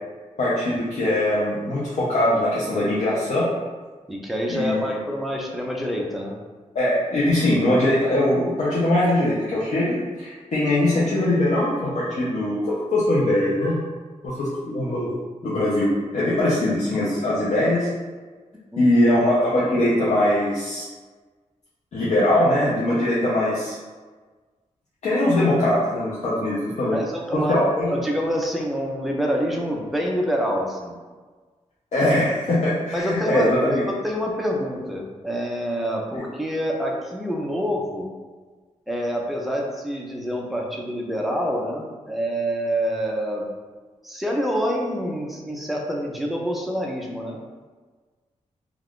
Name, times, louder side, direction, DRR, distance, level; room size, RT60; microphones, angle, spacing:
voice 1, 0.4-3.5 4.5-5.0 6.7-13.8 14.2-15.1 15.4-17.9 18.8-20.8 21.9-23.7 25.0-27.0 27.3-27.9 31.9-33.8 36.1-36.2, left 1 dB, 65° left, -8 dB, 0.6 m, -21 dB
voice 2, 4.1-6.4 18.7-18.9 26.9-31.0 32.9-38.1 38.9-43.5 44.0-47.4, equal, ahead, -1 dB, 0.4 m, -27 dB
2.4 x 2.3 x 3.5 m, 1.4 s
wide cardioid pair, 145°, 13 cm